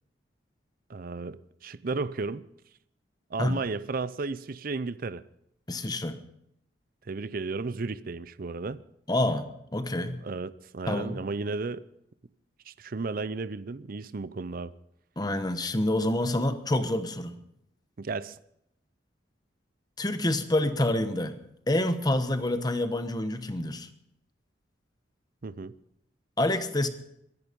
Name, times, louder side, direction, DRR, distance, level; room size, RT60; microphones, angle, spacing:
voice 1, 0.9-2.4 3.3-5.2 7.1-8.8 10.2-11.8 12.7-14.7 18.0-18.4 25.4-25.8, right 3 dB, 50° right, 0.6 m, -33 dB
voice 2, 5.7-6.2 9.1-10.2 10.9-11.2 15.2-17.3 20.0-21.4 21.7-23.9 26.4-26.9, left 1 dB, 20° left, 1.0 m, -27 dB
22.5 x 11.0 x 5.3 m
head